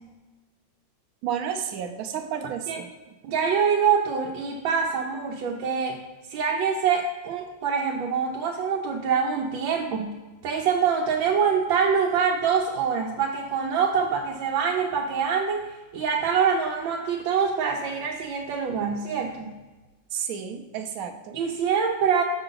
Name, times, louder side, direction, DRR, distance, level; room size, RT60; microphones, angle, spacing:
voice 1, 1.2-2.9 20.1-21.4, right 8 dB, 65° right, 6 dB, 0.9 m, -31 dB
voice 2, 3.2-6.0 6.3-10.2 10.4-15.6 15.9-19.5 21.3-22.2, right 6 dB, 85° right, -1 dB, 1.4 m, -25 dB
6.6 x 5.9 x 3.8 m, 1.2 s
omnidirectional pair, 2.0 m